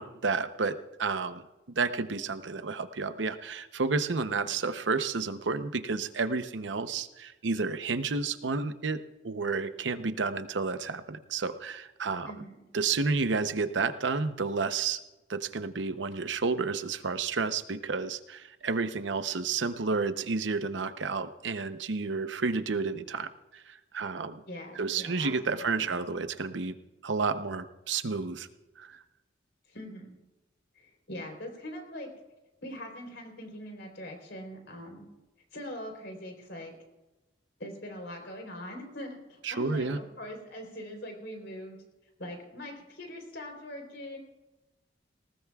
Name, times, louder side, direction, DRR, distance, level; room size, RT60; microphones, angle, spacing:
voice 1, 0.0-12.3 12.7-15.0 15.3-24.4 24.8-26.7 27.0-28.5 28.8-29.0 39.4-40.0, right 4 dB, 90° right, 10 dB, 0.8 m, -31 dB
voice 2, 12.1-12.7 24.5-25.9 29.7-30.2 30.7-32.1 32.6-35.1 35.5-36.7 37.6-41.8 42.2-44.2, left 1 dB, 70° left, 3 dB, 3.7 m, -42 dB
19.5 x 18.5 x 2.4 m, 1.0 s
head